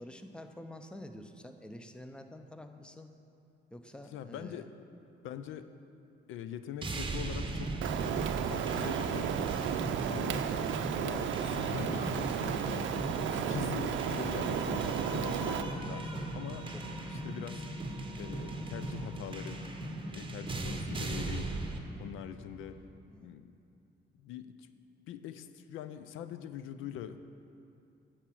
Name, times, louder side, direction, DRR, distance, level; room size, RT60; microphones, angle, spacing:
voice 1, 0.0-3.1 3.7-4.7 16.1-16.3 16.7-17.1 23.1-23.3, left 1 dB, 5° left, 7 dB, 0.6 m, -48 dB
voice 2, 4.1-4.7 5.2-5.7 6.3-8.1 8.5-9.5 10.1-10.5 11.0-12.9 13.3-16.1 16.3-16.7 17.1-17.7 18.2-19.6 20.1-21.5 22.0-22.8 23.2-23.5 24.1-24.7 25.1-27.2, left 9 dB, 85° left, 11 dB, 0.5 m, -43 dB
sound 1, 6.8-21.8, right 2 dB, 25° right, 1.0 m, -38 dB
Rain, 7.8-15.6, right 9 dB, 75° right, 0.5 m, -33 dB
sound 2, 11.5-22.8, left 2 dB, 25° left, 1.6 m, -47 dB
9.9 x 4.6 x 7.6 m, 2.6 s
cardioid pair, 90°, 20 cm